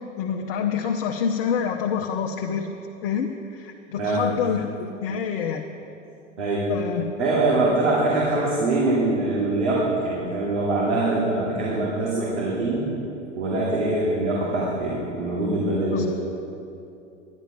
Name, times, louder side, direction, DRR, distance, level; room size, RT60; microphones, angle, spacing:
voice 1, 0.0-2.8 3.0-5.6 6.7-7.1 15.9-16.1, left 7 dB, 45° left, 2 dB, 0.9 m, -27 dB
voice 2, 7.2-12.8 13.4-16.1, right 2 dB, 70° right, -6 dB, 2.6 m, -23 dB
11.5 x 11.0 x 5.4 m, 2.7 s
figure-of-eight pair, 90°, 38 cm